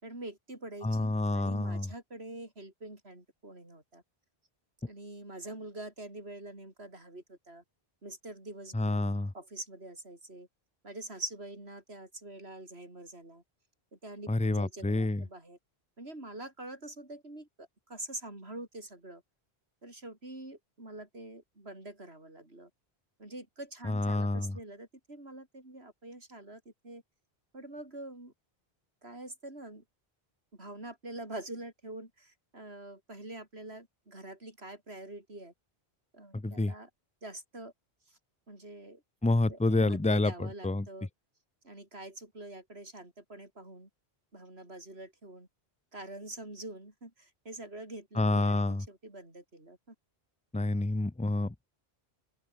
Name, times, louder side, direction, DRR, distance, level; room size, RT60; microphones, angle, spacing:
voice 1, 0.0-4.0 4.9-7.6 8.0-9.1 9.3-10.5 10.8-13.4 13.9-15.6 16.0-19.2 19.8-22.7 23.2-27.0 27.5-28.3 29.0-29.8 30.5-35.5 36.1-36.9 37.2-37.7 38.1-38.2 38.5-39.0 39.5-41.1 41.6-43.9 44.3-45.5 45.9-50.0, right 2 dB, 85° right, 5.8 m, -45 dB
voice 2, 0.8-1.9 8.7-9.3 14.3-15.2 23.8-24.6 36.3-36.7 39.2-40.3 40.6-40.8 48.2-48.8 50.5-51.7, left 2 dB, 10° left, 0.5 m, -28 dB
open air
omnidirectional pair, 1.0 m